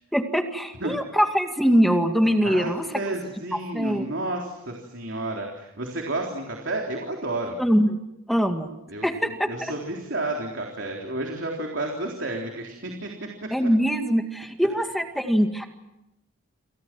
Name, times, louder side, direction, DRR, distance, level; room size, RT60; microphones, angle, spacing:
voice 1, 0.1-2.9 3.7-4.1 7.6-7.9 8.3-8.7 9.0-9.3 9.6-9.7 13.5-15.7, equal, ahead, 5 dB, 2.0 m, -22 dB
voice 2, 2.4-7.6 8.9-13.7, right 2 dB, 60° right, 1 dB, 3.7 m, -31 dB
29.0 x 28.5 x 6.1 m, 0.89 s
head